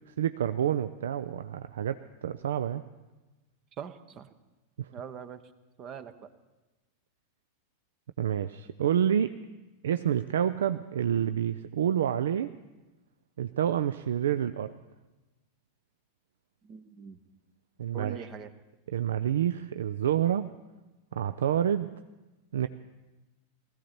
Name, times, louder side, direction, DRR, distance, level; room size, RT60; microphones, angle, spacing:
voice 1, 0.1-2.8 4.8-4.9 8.2-9.3 9.8-12.5 13.4-14.7 17.8-18.3 18.9-20.5 21.1-21.9 22.5-22.7, right 9 dB, 65° right, 12 dB, 0.4 m, -28 dB
voice 2, 3.8-4.3 4.9-5.4 5.8-6.3 16.6-17.2 17.9-18.5, right 7 dB, 30° right, 13 dB, 0.9 m, -42 dB
19.5 x 15.0 x 4.3 m, 1.1 s
figure-of-eight pair, 90°, 0 cm